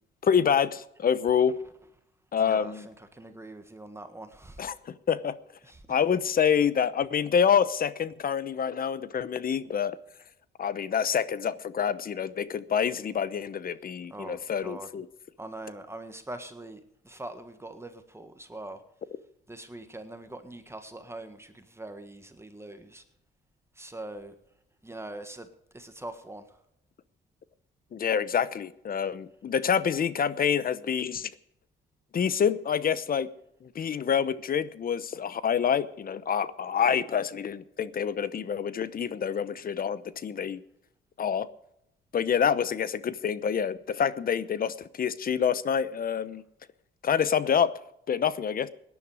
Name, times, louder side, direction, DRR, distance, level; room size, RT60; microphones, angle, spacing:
voice 1, 0.2-1.6 2.3-2.9 4.6-5.4 5.9-10.0 10.6-15.1 27.9-31.3 32.1-33.3 33.6-40.6 41.2-41.5 42.1-46.4 47.0-47.7 48.1-48.7, left 7 dB, 45° left, 16 dB, 0.9 m, -27 dB
voice 2, 2.4-4.6 5.6-6.0 14.1-14.9 15.4-18.8 19.5-23.0 23.7-24.3 24.8-25.5 25.7-26.6, right 2 dB, 15° right, 8 dB, 1.6 m, -43 dB
17.5 x 10.5 x 4.9 m, 0.78 s
cardioid pair, 90°, 20 cm